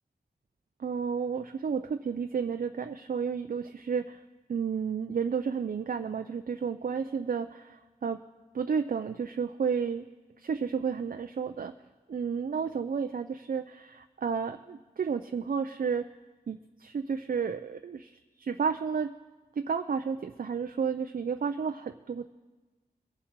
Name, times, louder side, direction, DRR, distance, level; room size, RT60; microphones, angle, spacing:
voice 1, 0.8-4.2 4.5-8.2 8.5-10.0 10.4-11.7 12.1-16.1 16.5-19.1 19.6-22.3, right 6 dB, 65° right, 7 dB, 0.5 m, -32 dB
22.0 x 7.3 x 4.6 m, 1.2 s
wide cardioid pair, 95°, 16 cm